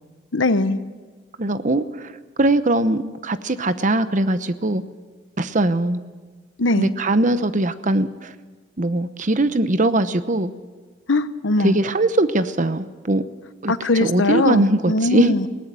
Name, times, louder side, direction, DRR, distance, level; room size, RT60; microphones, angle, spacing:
voice 1, 0.3-0.8 6.6-6.9 11.1-11.8 13.7-15.5, left 2 dB, 85° left, 12 dB, 1.0 m, -20 dB
voice 2, 1.4-2.1 2.4-4.8 5.4-6.0 6.8-8.3 8.8-10.5 11.6-13.2 13.6-15.5, right 1 dB, 40° right, 12 dB, 0.9 m, -21 dB
20.0 x 18.0 x 7.7 m, 1.4 s
head